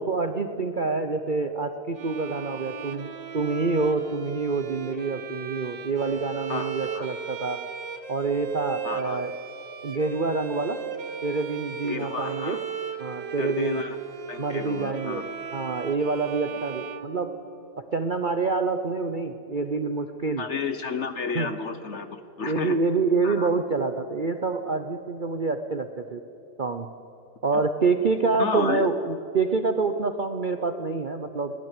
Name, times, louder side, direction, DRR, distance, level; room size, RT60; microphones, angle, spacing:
voice 1, 0.0-7.6 8.1-9.3 9.8-10.8 11.2-12.6 13.0-13.8 14.4-15.2 15.5-17.3 17.8-20.4 21.3-21.5 22.4-26.2 26.6-26.9 27.4-31.5, right 4 dB, 90° right, 7 dB, 0.4 m, -27 dB
Bowed string instrument, 1.9-17.8, right 7 dB, 65° right, 2.0 m, -37 dB
voice 2, 6.5-7.1 8.8-9.2 11.8-12.6 13.4-14.0 14.3-15.2 20.4-22.8 23.2-23.5 28.4-28.9, left 5 dB, 45° left, 10 dB, 1.0 m, -31 dB
22.0 x 17.5 x 9.0 m, 2.8 s
omnidirectional pair, 2.2 m